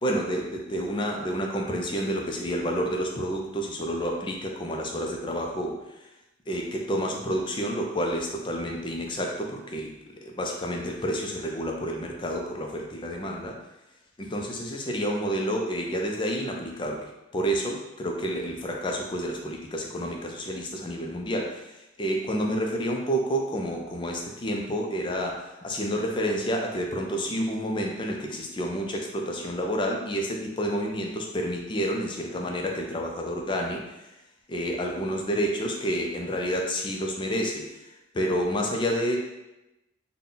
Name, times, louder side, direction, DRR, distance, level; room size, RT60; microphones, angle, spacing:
voice 1, 0.0-5.8 6.5-9.9 10.2-13.6 14.2-33.8 34.5-39.2, equal, 25° left, 1 dB, 0.4 m, -29 dB
3.8 x 2.2 x 3.8 m, 0.96 s
head